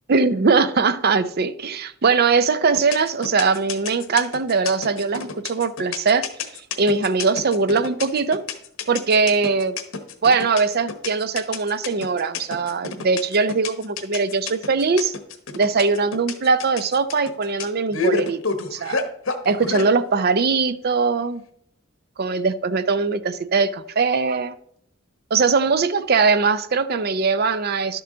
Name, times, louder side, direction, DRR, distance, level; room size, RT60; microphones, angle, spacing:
voice 1, 0.1-6.2 6.8-8.4 8.9-9.8 10.2-15.1 15.5-18.4 18.7-19.0 19.5-21.4 22.2-24.5 25.3-28.0, right 4 dB, 50° right, 0.5 m, -21 dB
sound 1, 2.8-19.9, left 4 dB, 90° left, 1.1 m, -29 dB
11.5 x 6.8 x 3.9 m
head